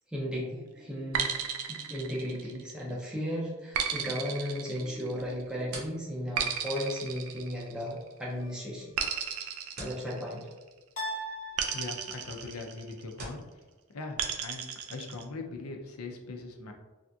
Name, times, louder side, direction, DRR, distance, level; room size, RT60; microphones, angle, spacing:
voice 1, 0.1-9.0 9.8-10.5, equal, 5° right, -5 dB, 0.5 m, -35 dB
sound 1, 1.1-2.8 3.7-5.4 6.4-8.1 9.0-10.7 11.6-13.1 14.2-15.2, right 7 dB, 75° right, 0.4 m, -34 dB
sound 2, 5.1-13.5, right 2 dB, 50° right, 0.9 m, -51 dB
sound 3, 8.4-9.1 11.0-12.4, equal, 35° left, 1.0 m, -40 dB
voice 2, 11.7-13.4 13.9-16.7, left 3 dB, 85° left, 3 dB, 0.5 m, -41 dB
3.3 x 2.4 x 2.6 m, 1.2 s
head